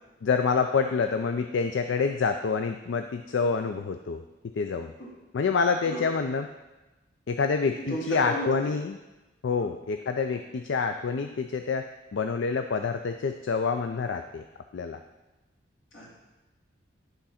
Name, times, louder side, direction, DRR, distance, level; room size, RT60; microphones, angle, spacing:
voice 1, 0.2-4.2 4.6-4.9 5.3-6.5 7.3-8.9 9.4-11.9 12.1-14.4 14.7-15.0, left 5 dB, 70° left, 7 dB, 0.4 m, -27 dB
voice 2, 7.8-8.7 15.9-16.1, equal, 85° left, -6 dB, 2.3 m, -33 dB
10.5 x 3.8 x 5.7 m, 1.1 s
head